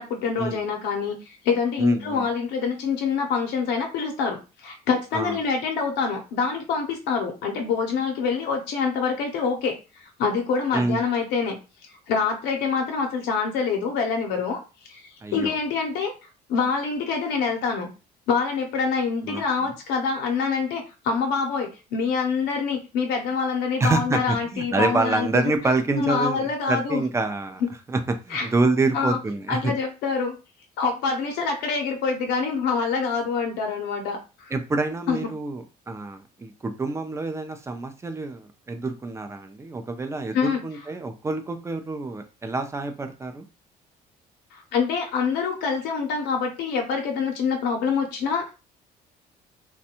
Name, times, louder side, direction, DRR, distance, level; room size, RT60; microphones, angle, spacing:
voice 1, 0.0-9.8 10.0-11.6 11.9-14.6 14.9-16.1 16.5-17.9 18.3-25.5 26.0-27.1 28.3-28.5 28.9-29.2 29.5-30.4 30.8-34.5 35.1-35.3 40.3-40.6 44.5-48.5, left 5 dB, 85° left, 2 dB, 0.7 m, -26 dB
voice 2, 1.8-2.3 5.1-5.4 10.7-11.0 15.2-15.6 19.2-19.7 23.8-27.6 27.9-28.0 28.3-29.7 34.5-43.4, right 3 dB, 15° right, 7 dB, 0.5 m, -27 dB
2.5 x 2.2 x 2.8 m, 0.31 s
cardioid pair, 110°, 17 cm